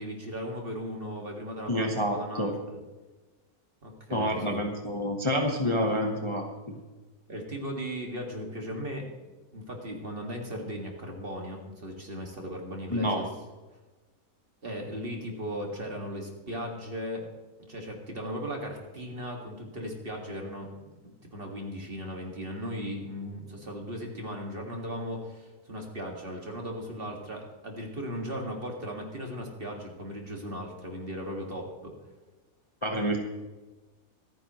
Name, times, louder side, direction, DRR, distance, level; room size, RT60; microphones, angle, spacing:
voice 1, 0.0-2.8 3.8-4.6 7.3-9.1 9.5-13.3 14.6-17.3 17.6-20.7 21.0-31.9, equal, 35° right, 1 dB, 2.3 m, -37 dB
voice 2, 1.7-2.5 4.1-6.8 12.9-13.2 32.8-33.2, equal, 20° left, 2 dB, 1.0 m, -28 dB
26.0 x 9.5 x 3.1 m, 1.2 s
omnidirectional pair, 1.6 m